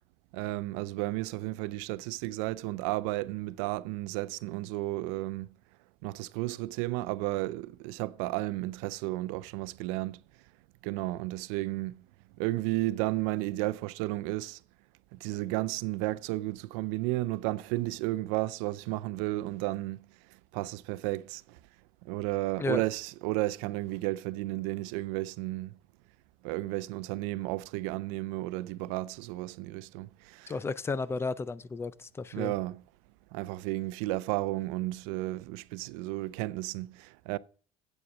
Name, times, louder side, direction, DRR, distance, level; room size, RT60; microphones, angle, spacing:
voice 1, 0.3-5.5 6.0-10.2 10.8-12.0 12.4-14.6 15.1-20.0 20.5-21.6 22.0-25.7 26.4-30.5 32.3-32.8 33.3-37.4, right 18 dB, 85° right, 0.5 m, -33 dB
voice 2, 30.5-32.5, left 3 dB, 15° left, 0.4 m, -33 dB
8.4 x 7.7 x 6.1 m
cardioid pair, 140°, 16 cm